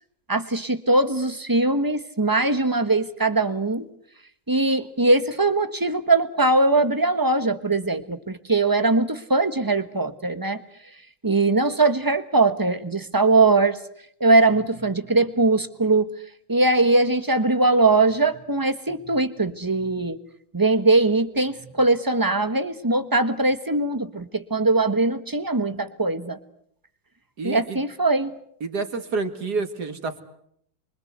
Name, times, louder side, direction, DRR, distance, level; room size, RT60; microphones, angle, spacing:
voice 1, 0.3-3.8 4.5-10.6 11.2-13.8 14.2-16.1 16.5-20.2 20.5-26.4 27.4-28.3, right 2 dB, 15° right, 10 dB, 1.0 m, -21 dB
voice 2, 27.4-27.8 28.6-30.2, right 4 dB, 50° right, 8 dB, 2.5 m, -29 dB
28.5 x 24.0 x 8.1 m, 0.70 s
omnidirectional pair, 2.3 m